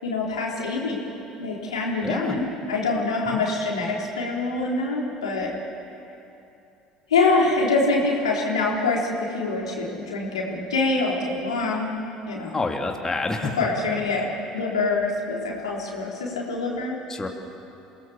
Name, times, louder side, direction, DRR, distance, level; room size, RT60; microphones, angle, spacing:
voice 1, 0.0-1.0 1.4-5.5 7.1-11.9 12.3-12.6 13.6-14.3 14.5-17.0, left 3 dB, 85° left, -3 dB, 3.7 m, -25 dB
voice 2, 2.0-2.4 3.3-3.5 12.5-13.6 17.1-17.3, left 3 dB, 20° left, 2 dB, 2.4 m, -28 dB
27.5 x 18.5 x 7.3 m, 2.8 s
hypercardioid pair, 65°, 3 cm